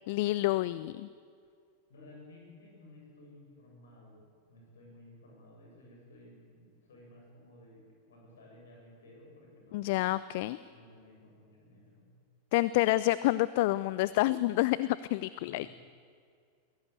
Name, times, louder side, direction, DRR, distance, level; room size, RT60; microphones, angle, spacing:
voice 1, 0.1-1.1 9.7-10.6 12.5-15.7, left 17 dB, 50° left, 17 dB, 0.5 m, -28 dB
voice 2, 1.9-10.0 10.7-12.1 15.4-15.7, left 1 dB, 65° left, -1 dB, 8.0 m, -55 dB
22.5 x 17.0 x 8.3 m, 2.2 s
figure-of-eight pair, 90°, 0 cm